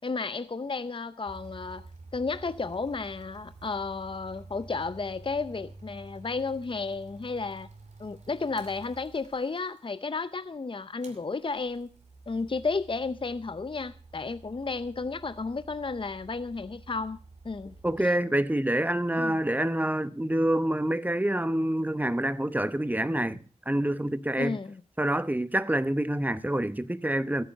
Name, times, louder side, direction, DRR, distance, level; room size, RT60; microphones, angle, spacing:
voice 1, 0.0-1.9 2.1-7.7 8.0-11.9 12.3-17.2 17.4-18.1 19.2-19.4 24.4-24.8, left 4 dB, 45° left, 0.6 m, -33 dB
sound 1, 1.3-9.9 11.0-18.1, right 3 dB, 75° right, 2.6 m, -50 dB
voice 2, 17.8-23.4 23.7-24.6 25.0-27.4, right 1 dB, 15° right, 1.0 m, -27 dB
14.5 x 8.8 x 6.4 m
wide cardioid pair, 50°, 12 cm